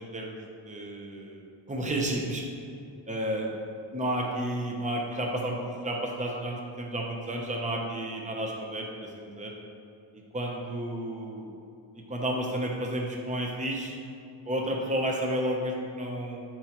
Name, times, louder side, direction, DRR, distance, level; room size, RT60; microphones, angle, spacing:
voice 1, 0.0-2.4 3.1-3.5 3.9-9.5 10.1-11.5 12.1-14.0 14.5-16.4, right 1 dB, 15° right, 0 dB, 0.7 m, -32 dB
10.5 x 4.5 x 3.0 m, 2.6 s
wide cardioid pair, 150°, 48 cm